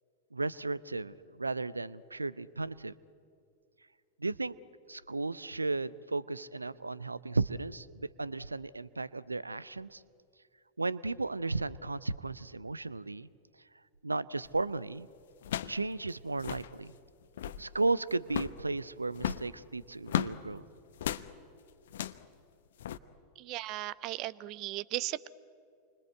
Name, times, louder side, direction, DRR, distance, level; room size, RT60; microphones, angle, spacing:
voice 1, 0.3-2.9 4.2-4.5 4.9-10.0 10.8-13.3 14.0-15.1 15.7-16.9 17.6-20.6, right 3 dB, 80° right, 20 dB, 0.6 m, -34 dB
sound 1, 14.4-14.7 15.4-15.8 16.1-16.2 16.3-16.7 17.2-17.7 18.3-18.6 19.1-20.4 21.0-21.3 21.9-22.2 22.8-23.0, left 11 dB, 60° left, 1.0 m, -35 dB
voice 2, 23.4-25.3, right 16 dB, 40° right, 20 dB, 0.8 m, -36 dB
29.0 x 25.0 x 8.1 m, 2.4 s
figure-of-eight pair, 90°, 0 cm